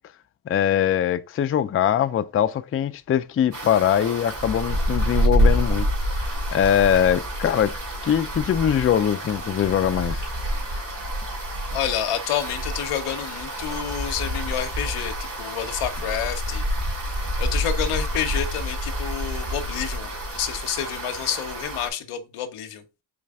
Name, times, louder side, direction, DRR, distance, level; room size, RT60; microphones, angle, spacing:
voice 1, 0.5-5.9 6.2-7.7 8.0-10.2, left 9 dB, 30° left, 0.4 m, -22 dB
sound 1, 3.5-21.9, equal, 55° right, 2.5 m, -27 dB
voice 2, 11.7-16.6 17.4-22.8, left 9 dB, 90° left, 0.8 m, -29 dB
4.3 x 3.2 x 3.4 m
cardioid pair, 55°, 49 cm